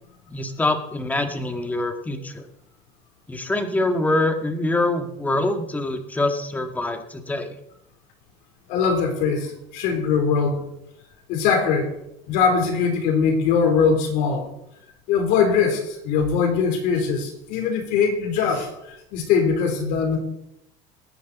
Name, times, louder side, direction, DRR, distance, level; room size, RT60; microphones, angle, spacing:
voice 1, 0.3-2.5 3.3-7.6, left 2 dB, 10° left, 6 dB, 1.6 m, -25 dB
voice 2, 8.7-10.6 11.3-11.9 12.3-14.5 15.1-20.2, left 6 dB, 70° left, 5 dB, 3.4 m, -21 dB
20.5 x 9.7 x 4.1 m, 0.83 s
cardioid pair, 130°, 14 cm